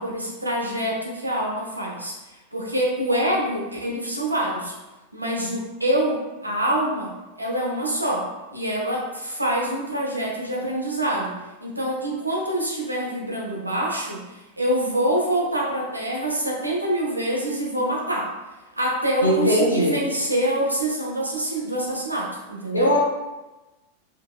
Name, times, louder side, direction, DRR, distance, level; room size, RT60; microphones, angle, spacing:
voice 1, 0.0-4.7 5.1-7.1 7.4-11.4 11.6-18.3 18.8-22.9, right 1 dB, 85° right, -2 dB, 0.8 m, -26 dB
voice 2, 19.2-20.0 22.7-23.1, equal, 80° left, -1 dB, 0.8 m, -20 dB
5.0 x 2.9 x 2.3 m, 1.1 s
figure-of-eight pair, 90°, 0 cm